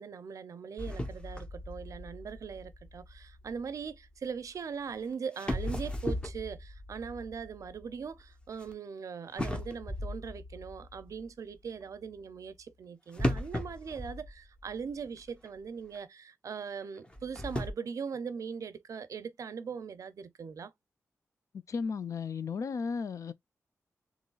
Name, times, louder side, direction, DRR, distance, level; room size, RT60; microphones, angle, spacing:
voice 1, 0.0-20.7, right 6 dB, 70° right, 0.5 m, -40 dB
sound 1, 0.8-3.9 4.9-5.0 5.4-8.7 9.4-11.3 13.2-15.0 15.2-15.3 16.0-16.1 17.0-17.7, left 1 dB, 15° left, 0.8 m, -37 dB
voice 2, 21.7-23.3, left 5 dB, 65° left, 0.4 m, -34 dB
3.8 x 3.0 x 2.3 m
wide cardioid pair, 100°, 6 cm